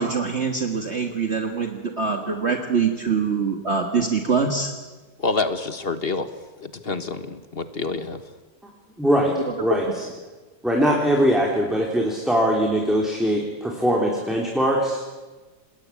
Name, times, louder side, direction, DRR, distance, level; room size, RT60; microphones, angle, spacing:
voice 1, 0.0-4.7 9.8-9.9, right 5 dB, 40° right, 4 dB, 1.9 m, -24 dB
voice 2, 5.2-6.3 6.6-8.2, left 3 dB, 35° left, 10 dB, 1.4 m, -27 dB
voice 3, 9.0-9.3 9.6-10.1 10.6-15.0, equal, ahead, -1 dB, 3.3 m, -21 dB
27.0 x 21.0 x 8.6 m, 1.3 s
omnidirectional pair, 1.8 m